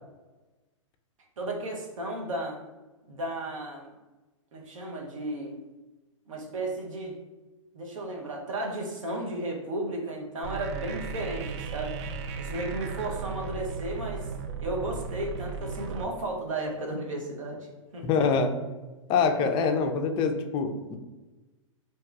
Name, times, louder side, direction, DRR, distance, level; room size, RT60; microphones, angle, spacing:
voice 1, 1.4-2.6 3.1-3.9 4.5-5.6 6.3-7.2 7.7-12.0 12.4-14.2 14.6-17.6 17.9-18.3, right 1 dB, 75° right, 0 dB, 0.9 m, -34 dB
sound 1, 10.4-16.0, right 5 dB, 55° right, 0.4 m, -36 dB
voice 2, 18.0-18.6 19.1-21.0, left 5 dB, 30° left, 6 dB, 0.4 m, -25 dB
2.8 x 2.3 x 3.3 m, 1.1 s
hypercardioid pair, 115°, 17 cm